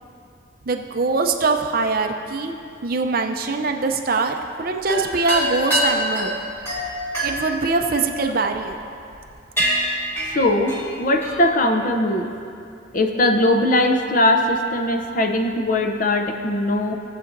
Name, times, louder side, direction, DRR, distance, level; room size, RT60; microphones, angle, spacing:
voice 1, 0.7-2.5 2.8-6.3 7.2-8.8, right 3 dB, 45° right, 4 dB, 0.6 m, -22 dB
sound 1, 4.8-8.6 9.1-9.3 9.6-11.5, equal, 10° left, 2.0 m, -25 dB
voice 2, 10.3-12.3 12.9-16.9, left 1 dB, 40° left, 4 dB, 0.6 m, -20 dB
18.0 x 7.5 x 2.6 m, 2.5 s
head